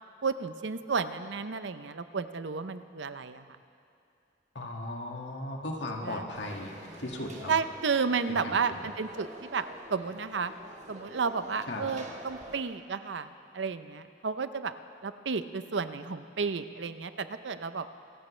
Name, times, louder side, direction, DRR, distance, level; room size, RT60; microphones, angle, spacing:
voice 1, 0.2-3.5 6.0-6.3 7.5-9.6 9.9-10.5 10.9-13.3 13.5-14.7 15.0-17.9, right 5 dB, 85° right, 11 dB, 0.7 m, -32 dB
voice 2, 4.6-7.5 8.4-8.8 11.7-11.9, left 1 dB, 80° left, 0 dB, 2.0 m, -37 dB
Conversation / Crowd, 6.3-12.6, right 1 dB, 40° right, 1.6 m, -47 dB
26.0 x 15.5 x 3.3 m, 2.5 s
head